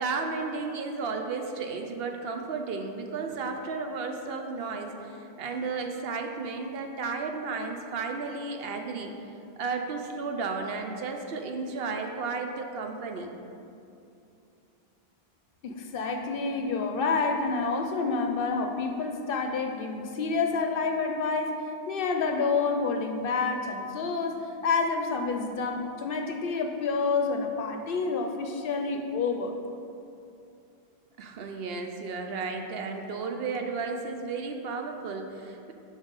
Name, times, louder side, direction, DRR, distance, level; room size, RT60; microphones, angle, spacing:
voice 1, 0.0-9.1 9.6-13.3 31.2-35.7, right 4 dB, 70° right, 4 dB, 0.8 m, -33 dB
voice 2, 15.6-21.6 21.9-29.5, left 4 dB, 65° left, 5 dB, 0.7 m, -28 dB
7.1 x 5.2 x 4.0 m, 2.6 s
omnidirectional pair, 1.1 m